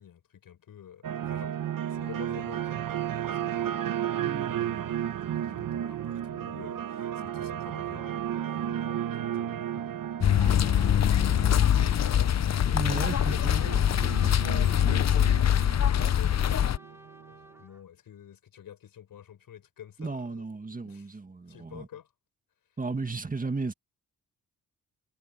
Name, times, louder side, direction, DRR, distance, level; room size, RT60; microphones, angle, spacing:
voice 1, 0.0-1.6 1.9-3.9 4.5-9.9 12.9-16.9 17.3-21.2 21.5-22.1, left 10 dB, 75° left, 4.6 m, -49 dB
sound 1, 1.0-17.4, right 10 dB, 70° right, 1.1 m, -34 dB
voice 2, 4.2-4.6 12.7-13.6 20.0-21.9 22.8-23.7, right 3 dB, 25° right, 2.0 m, -34 dB
sound 2, 10.2-16.8, left 10 dB, 50° left, 0.8 m, -23 dB
Trumpet, 13.1-17.8, equal, 10° right, 2.5 m, -51 dB
cardioid pair, 90°, 34 cm